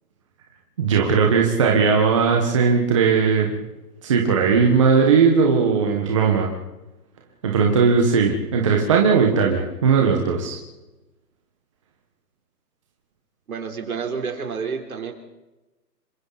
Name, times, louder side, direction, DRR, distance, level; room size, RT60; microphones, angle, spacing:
voice 1, 0.8-3.5 4.0-6.5 7.4-10.6, right 5 dB, 20° right, 0 dB, 1.5 m, -18 dB
voice 2, 13.5-15.1, right 6 dB, 55° right, 4 dB, 4.1 m, -29 dB
27.0 x 24.5 x 4.2 m, 1.0 s
hypercardioid pair, 175°, 50 cm